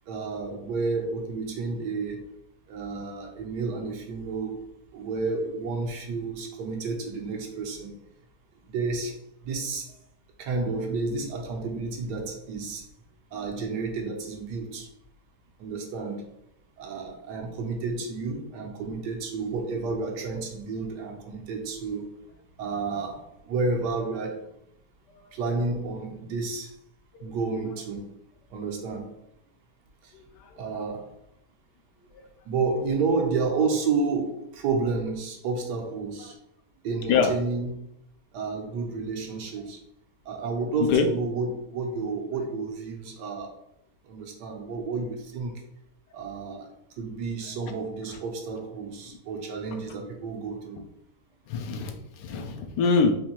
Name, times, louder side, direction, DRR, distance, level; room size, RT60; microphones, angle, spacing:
voice 1, 0.1-2.2 2.7-4.6 4.9-8.0 8.6-9.1 9.4-9.9 10.4-12.8 13.3-14.9 15.6-16.3 16.8-22.1 22.6-24.4 25.3-26.7 27.2-28.1 28.5-29.1 30.0-30.1 30.6-31.1 32.5-36.3 36.8-37.7 38.3-39.8 40.3-43.5 44.0-45.5 46.1-46.7 47.0-50.8, right 4 dB, 80° right, 2 dB, 1.3 m, -30 dB
voice 2, 30.1-30.6 32.1-32.2 37.1-37.3 40.8-41.1 48.1-48.2 51.5-53.1, left 5 dB, 80° left, 6 dB, 1.2 m, -25 dB
4.3 x 2.6 x 2.8 m, 0.78 s
omnidirectional pair, 1.8 m